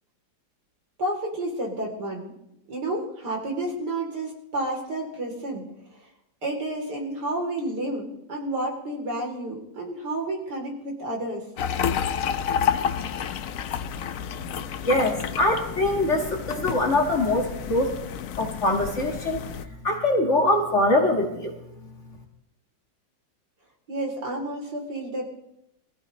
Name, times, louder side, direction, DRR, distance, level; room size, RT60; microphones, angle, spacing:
voice 1, 1.0-2.3 2.7-5.6 5.9-6.1 6.4-11.4 23.9-25.2, right 1 dB, 65° right, -1 dB, 4.0 m, -30 dB
sound 1, 11.6-19.7, left 8 dB, 60° left, 0.9 m, -30 dB
voice 2, 14.8-17.9 18.4-19.4 19.8-21.5, left 1 dB, 40° left, 1 dB, 2.1 m, -23 dB
22.0 x 15.0 x 3.2 m, 0.82 s
omnidirectional pair, 2.0 m